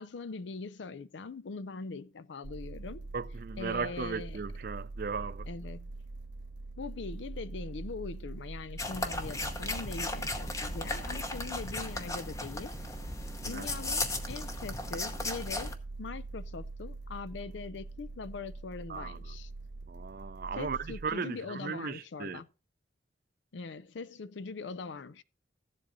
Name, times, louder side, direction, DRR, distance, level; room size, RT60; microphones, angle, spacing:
voice 1, 0.0-3.1 3.6-4.4 5.5-5.9 6.8-12.7 13.4-15.7 16.0-19.5 20.6-22.5 23.5-25.2, left 4 dB, 80° left, 0.5 m, -42 dB
sound 1, 2.4-21.1, right 2 dB, 90° right, 0.7 m, -43 dB
voice 2, 3.1-5.5 13.4-13.7 18.9-19.3 19.9-22.4, right 5 dB, 50° right, 0.4 m, -37 dB
sound 2, 8.8-15.7, left 2 dB, 15° left, 0.8 m, -36 dB
14.5 x 7.6 x 2.6 m
head